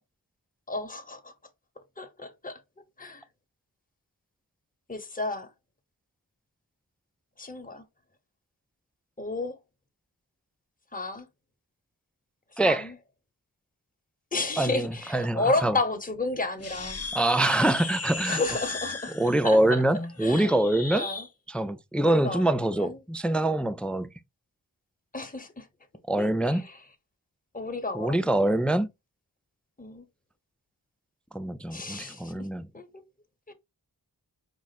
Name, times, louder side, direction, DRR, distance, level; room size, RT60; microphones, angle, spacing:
voice 1, 0.7-1.3 2.0-2.6 3.0-3.2 4.9-5.5 7.4-7.8 9.2-9.6 10.9-11.3 12.6-12.9 14.3-17.1 18.2-19.1 19.4-19.8 20.2-20.5 20.9-21.3 22.0-23.0 25.1-25.7 26.2-26.8 27.5-28.2 29.8-30.0 31.7-32.5 32.7-33.0 33.5-33.6, left 3 dB, 20° left, 1.1 m, -32 dB
voice 2, 12.6-12.9 14.6-15.8 17.1-18.4 19.1-21.1 21.5-24.1 26.1-26.7 27.9-28.9 31.3-32.7, right 1 dB, 5° left, 0.4 m, -25 dB
sound 1, 16.6-21.3, left 4 dB, 35° left, 0.7 m, -36 dB
5.2 x 2.4 x 4.1 m
wide cardioid pair, 45°, 44 cm